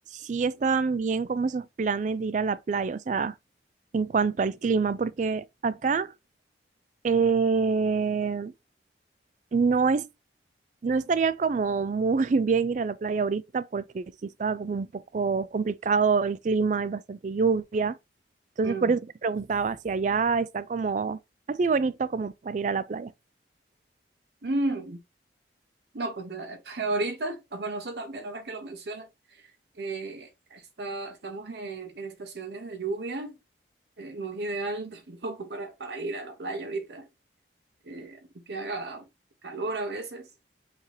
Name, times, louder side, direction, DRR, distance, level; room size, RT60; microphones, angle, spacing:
voice 1, 0.1-3.3 3.9-6.1 7.0-8.5 9.5-10.1 10.8-18.0 18.6-21.2 21.5-23.1, right 5 dB, 45° right, 0.3 m, -26 dB
voice 2, 18.6-18.9 24.4-25.0 25.9-29.5 29.8-33.4 34.0-37.1 37.8-39.1 39.4-40.3, right 2 dB, 65° right, 0.7 m, -34 dB
5.7 x 2.7 x 3.2 m
head